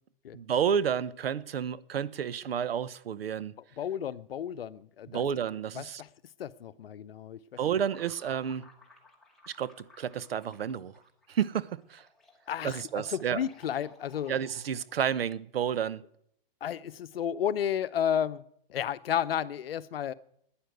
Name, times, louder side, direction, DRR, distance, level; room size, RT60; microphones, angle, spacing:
voice 1, 0.3-3.5 5.1-6.0 7.6-8.7 9.5-9.7 10.0-10.9 11.3-12.0 12.6-13.4 14.3-16.0, right 8 dB, 80° right, 1.0 m, -30 dB
voice 2, 3.8-5.2 5.7-6.1 6.4-7.4 12.5-14.3 16.6-18.4 18.7-20.1, left 9 dB, 75° left, 0.9 m, -32 dB
sound 1, 7.8-15.1, left 2 dB, ahead, 2.1 m, -58 dB
11.5 x 10.0 x 9.3 m
hypercardioid pair, 155°, 29 cm